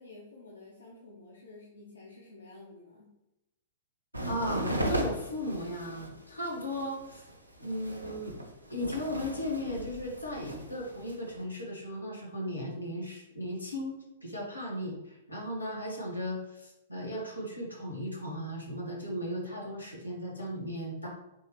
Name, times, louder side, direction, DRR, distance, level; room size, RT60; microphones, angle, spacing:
voice 1, 0.0-3.1, left 2 dB, 75° left, -5 dB, 1.0 m, -51 dB
sound 1, 4.1-11.4, equal, 90° right, 0.7 m, -37 dB
voice 2, 4.2-7.3 7.6-8.4 8.7-21.1, equal, 90° left, -3 dB, 1.4 m, -36 dB
5.3 x 3.2 x 3.0 m, 0.91 s
figure-of-eight pair, 105°, 0 cm